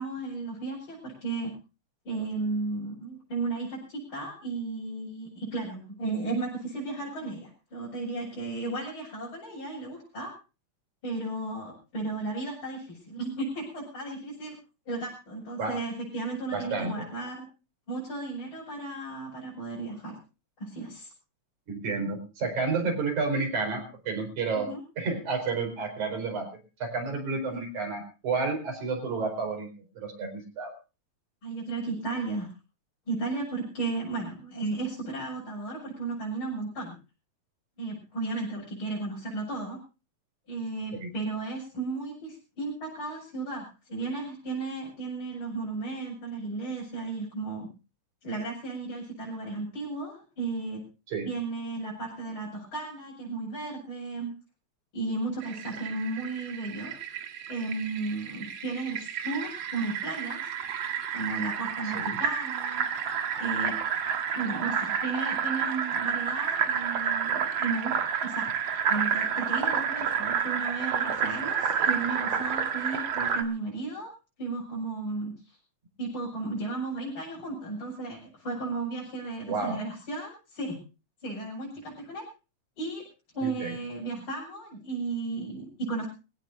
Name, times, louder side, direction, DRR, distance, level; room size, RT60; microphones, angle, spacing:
voice 1, 0.0-1.5 2.0-10.3 11.0-14.6 14.9-17.5 17.9-20.2 20.6-21.1 24.5-24.8 27.5-27.6 31.4-32.5 33.1-37.0 37.8-39.8 40.5-47.7 48.2-50.8 51.3-54.3 54.9-56.9 57.5-60.5 61.1-62.8 63.4-63.8 64.3-67.9 68.2-74.1 74.4-75.6 76.0-80.8 81.2-82.2 82.8-83.1 83.3-86.1, right 3 dB, 45° left, -4 dB, 7.4 m, -34 dB
voice 2, 16.5-17.0 21.7-26.5 26.8-29.7 30.0-30.7 40.9-41.1 51.1-51.3 62.0-62.2 79.5-79.8 83.4-83.7, right 4 dB, 80° right, 4 dB, 5.9 m, -31 dB
Fill (with liquid), 55.4-73.4, right 7 dB, 60° right, 2.4 m, -30 dB
24.0 x 17.0 x 2.6 m, 0.32 s
omnidirectional pair, 3.3 m